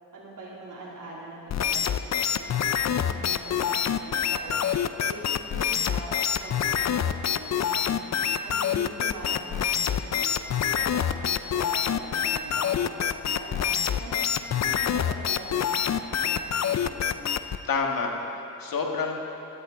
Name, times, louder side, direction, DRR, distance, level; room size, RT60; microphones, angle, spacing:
voice 1, 0.1-5.2 5.5-8.1 8.4-13.7 14.0-14.2 14.5-17.3, right 2 dB, 55° right, -6 dB, 3.3 m, -43 dB
sound 1, 1.5-17.6, left 8 dB, 45° left, 0.6 m, -26 dB
voice 2, 17.7-19.2, left 4 dB, 65° left, 1 dB, 1.9 m, -28 dB
16.5 x 13.0 x 3.8 m, 2.9 s
supercardioid pair, 55°, 37 cm